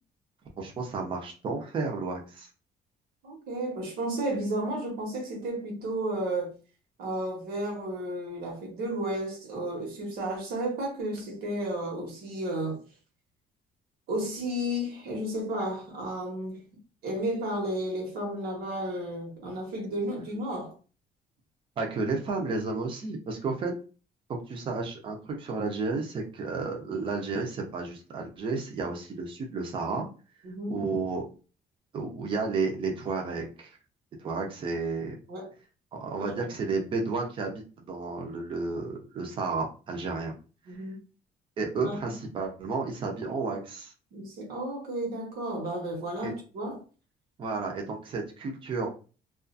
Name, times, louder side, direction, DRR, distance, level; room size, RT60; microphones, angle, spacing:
voice 1, 0.6-2.5 21.8-23.7 24.5-30.1 30.7-31.3 31.9-33.7 34.2-35.1 35.9-40.3 41.6-43.9 46.2-46.3 47.4-48.9, right 4 dB, 35° right, 0.6 m, -32 dB
voice 2, 3.2-6.5 7.0-12.8 14.1-16.6 17.0-20.8 30.4-30.8 35.3-35.5 36.2-36.4 40.7-41.0 41.8-42.1 44.1-46.8, right 1 dB, 75° right, 1.1 m, -33 dB
2.4 x 2.4 x 2.5 m
cardioid pair, 180°, 16 cm